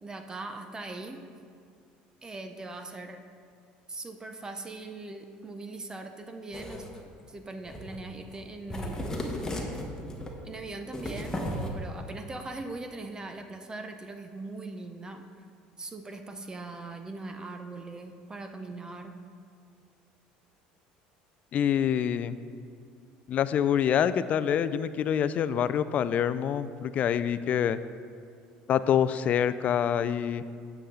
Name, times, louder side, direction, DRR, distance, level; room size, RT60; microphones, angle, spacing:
voice 1, 0.0-1.3 2.2-3.2 3.9-6.9 7.3-9.1 10.4-15.2 15.8-19.2, right 2 dB, 20° right, 7 dB, 0.6 m, -40 dB
sound 1, 6.5-7.0 7.6-8.0 8.3-8.4 8.7-10.3 10.9-11.7, left 1 dB, 15° left, 1.2 m, -35 dB
voice 2, 21.5-22.4 23.3-27.8 28.7-30.4, left 9 dB, 45° left, 14 dB, 0.3 m, -26 dB
9.1 x 7.0 x 3.8 m, 2.2 s
supercardioid pair, 100°, 3 cm